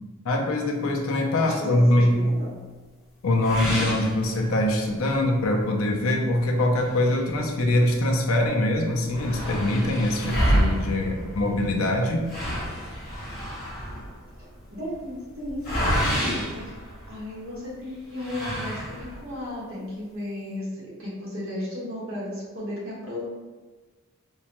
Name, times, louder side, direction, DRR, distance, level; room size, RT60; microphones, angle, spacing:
voice 1, 0.2-2.3 3.2-12.3, left 1 dB, 75° left, 1 dB, 0.5 m, -23 dB
voice 2, 1.4-2.5 14.4-16.7 17.1-23.2, left 1 dB, 70° right, -8 dB, 1.3 m, -35 dB
sound 1, 3.4-4.9 5.3-5.4 5.9-6.0 6.8-8.1 8.4-8.5 8.7-17.5 18.1-19.3, equal, 45° left, 1.1 m, -29 dB
3.6 x 2.1 x 2.9 m, 1.3 s
head